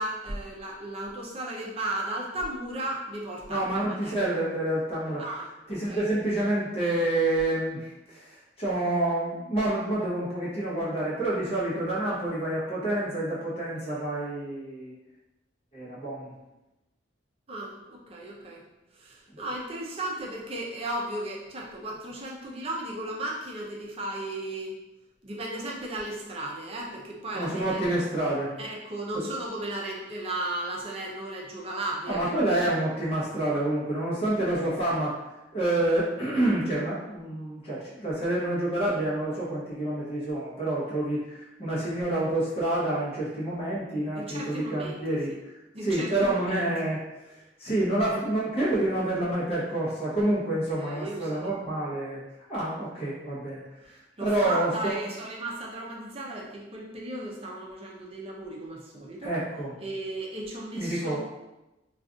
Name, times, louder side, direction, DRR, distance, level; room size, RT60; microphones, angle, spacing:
voice 1, 0.0-4.2 5.2-6.1 17.5-18.6 18.9-24.7 25.2-27.8 28.6-32.5 44.1-45.0 45.7-46.6 50.8-51.3 53.8-59.3 59.8-61.2, right 1 dB, 30° right, -2 dB, 0.5 m, -35 dB
voice 2, 3.5-5.2 5.7-14.9 15.7-16.4 27.3-28.5 29.1-29.3 32.1-35.2 35.5-45.5 45.8-47.0 47.3-52.2 52.5-53.6 54.2-55.0 59.2-59.7 60.7-61.2, right 1 dB, 35° left, -8 dB, 0.9 m, -28 dB
2.4 x 2.4 x 3.7 m, 0.98 s
head